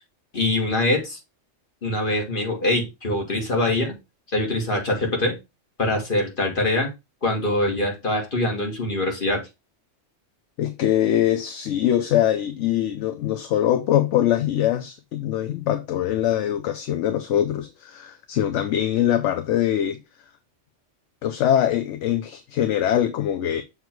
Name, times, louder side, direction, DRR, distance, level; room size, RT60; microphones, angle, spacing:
voice 1, 0.3-1.2 1.8-3.9 4.3-5.3 5.8-6.9 7.2-9.4, left 1 dB, 45° left, 2.0 m, -23 dB
voice 2, 10.6-20.0 21.2-23.6, left 11 dB, 70° left, 0.9 m, -23 dB
6.7 x 3.3 x 4.5 m
omnidirectional pair, 1.3 m